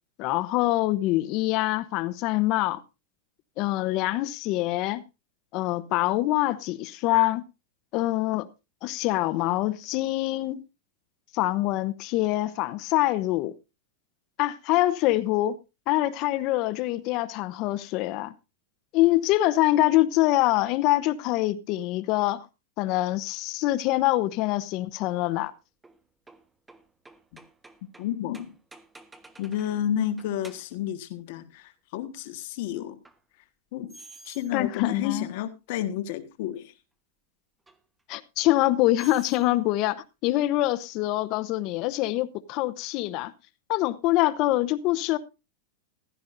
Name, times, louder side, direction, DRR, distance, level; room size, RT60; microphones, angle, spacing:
voice 1, 0.2-2.8 3.6-5.0 5.5-7.4 7.9-8.5 8.8-10.6 11.3-13.5 14.4-15.6 15.9-18.3 18.9-22.5 22.8-25.5 34.5-35.3 38.1-43.3 43.7-45.2, left 17 dB, 45° left, 0.8 m, -25 dB
sound 1, 25.4-29.9 30.2-30.8 33.0-33.2 33.9-34.5 35.3-35.4 37.7-37.8 39.0-39.5, right 3 dB, 10° right, 1.2 m, -51 dB
voice 2, 28.0-28.5 29.4-33.0 33.7-34.0 34.2-36.7, left 10 dB, 60° left, 1.5 m, -31 dB
15.0 x 13.5 x 2.6 m
supercardioid pair, 140°, 0 cm